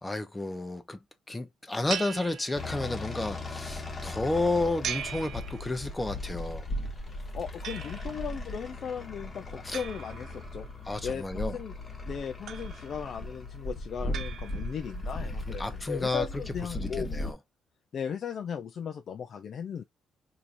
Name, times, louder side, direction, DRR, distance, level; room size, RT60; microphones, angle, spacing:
voice 1, 0.0-1.0 1.3-6.7 9.6-9.8 10.9-11.6 15.5-16.3 16.7-17.4, left 2 dB, 15° left, 0.7 m, -31 dB
sound 1, 1.9-3.1 4.8-6.1 7.6-8.4 9.7-10.9 12.5-13.2 14.1-15.0, right 9 dB, 70° right, 0.4 m, -40 dB
sound 2, 2.6-17.3, left 2 dB, 30° left, 1.1 m, -38 dB
voice 2, 7.1-10.7 11.0-11.7 12.1-17.1 17.9-19.8, left 7 dB, 55° left, 0.4 m, -37 dB
4.5 x 2.7 x 2.5 m
cardioid pair, 90°, 0 cm